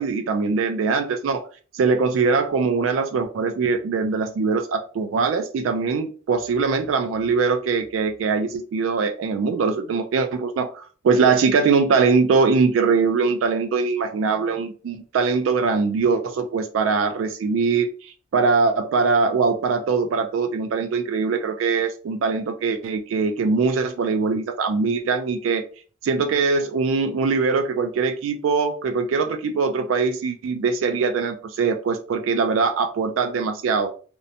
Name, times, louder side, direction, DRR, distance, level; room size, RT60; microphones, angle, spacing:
voice 1, 0.0-1.5 1.7-25.6 26.0-33.9, right 4 dB, 85° right, 7 dB, 0.3 m, -22 dB
2.6 x 2.1 x 2.6 m, 0.39 s
head